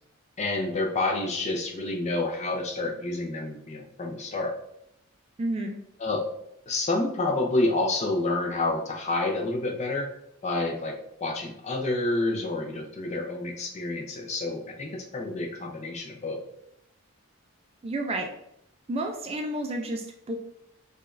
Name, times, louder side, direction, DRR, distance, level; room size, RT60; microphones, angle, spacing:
voice 1, 0.4-4.5 6.0-6.3 6.7-10.1 10.4-10.9 11.2-16.4, left 2 dB, 30° left, 1 dB, 0.5 m, -28 dB
voice 2, 5.4-5.8 17.8-18.3 18.9-20.3, right 1 dB, 30° right, 3 dB, 0.3 m, -30 dB
4.7 x 2.4 x 2.5 m, 0.77 s
head